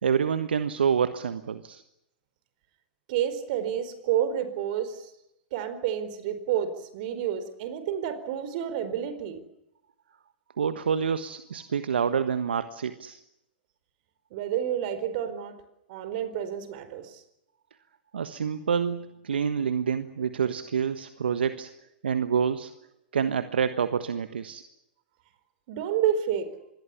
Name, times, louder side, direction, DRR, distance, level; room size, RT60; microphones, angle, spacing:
voice 1, 0.0-1.8 10.6-13.2 18.1-21.7 22.0-22.7 23.1-24.6, right 7 dB, 80° right, 11 dB, 1.4 m, -27 dB
voice 2, 3.1-5.1 5.5-9.4 14.3-15.6 15.9-17.2 25.7-26.6, right 9 dB, 55° right, 12 dB, 4.6 m, -29 dB
26.5 x 21.5 x 7.1 m, 0.84 s
hypercardioid pair, 105°, 6 cm